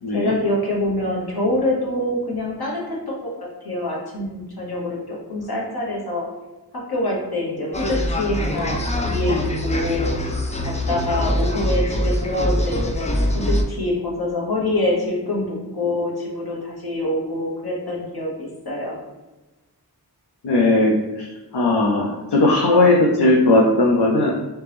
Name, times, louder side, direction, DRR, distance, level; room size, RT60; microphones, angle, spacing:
voice 1, 0.1-3.3 3.6-6.2 6.9-10.1 10.6-19.0 22.7-22.8, left 1 dB, 65° left, -3 dB, 1.1 m, -25 dB
sound 1, 7.7-13.6, left 1 dB, 20° left, 0.4 m, -23 dB
voice 2, 20.4-21.0 21.5-24.3, left 2 dB, 80° left, -2 dB, 0.6 m, -17 dB
3.3 x 2.9 x 3.3 m, 1.1 s
wide cardioid pair, 50°, 40 cm